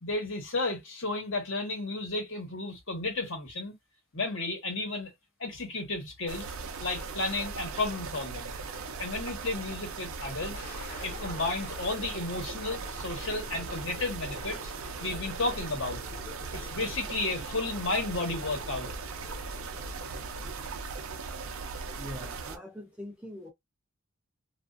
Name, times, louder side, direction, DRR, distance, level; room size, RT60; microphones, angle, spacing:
voice 1, 0.0-3.8 4.1-5.1 5.4-6.5 6.8-8.5 9.0-10.6 11.0-14.7 15.0-16.0 16.5-18.9, left 2 dB, 65° left, 1.1 m, -33 dB
sound 1, 6.3-22.6, right 4 dB, 80° right, 0.5 m, -39 dB
Thunder, 10.3-20.9, left 4 dB, 40° left, 1.1 m, -49 dB
voice 2, 22.0-23.5, left 1 dB, 5° right, 0.4 m, -43 dB
2.4 x 2.3 x 2.4 m
head